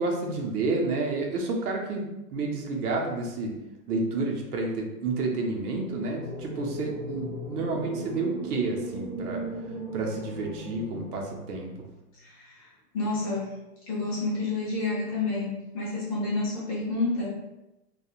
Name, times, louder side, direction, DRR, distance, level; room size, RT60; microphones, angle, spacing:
voice 1, 0.0-3.6 3.9-9.4 9.9-11.9, right 3 dB, 70° right, 0 dB, 0.8 m, -30 dB
sound 1, 5.7-11.9, right 1 dB, 40° right, 1.1 m, -38 dB
voice 2, 12.2-13.5 13.9-17.4, left 3 dB, 25° left, -7 dB, 0.6 m, -29 dB
2.8 x 2.3 x 2.3 m, 0.95 s
hypercardioid pair, 150°, 48 cm